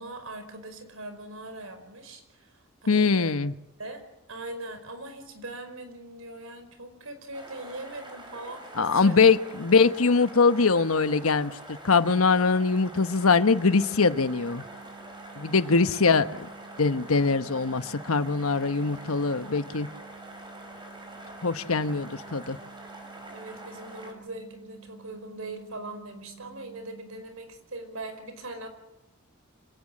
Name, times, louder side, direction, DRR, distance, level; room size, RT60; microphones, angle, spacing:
voice 1, 0.0-3.3 3.8-4.0 4.3-9.2 15.5-16.1 23.3-28.7, right 2 dB, 75° right, 8 dB, 5.0 m, -41 dB
voice 2, 2.9-3.5 8.8-14.6 15.4-16.5 16.8-19.9 21.4-22.6, left 4 dB, 85° left, 12 dB, 1.1 m, -22 dB
sound 1, 7.3-24.1, right 1 dB, 20° right, 4.8 m, -45 dB
sound 2, 13.5-27.2, right 6 dB, 5° right, 1.5 m, -51 dB
26.5 x 17.5 x 7.7 m, 0.87 s
head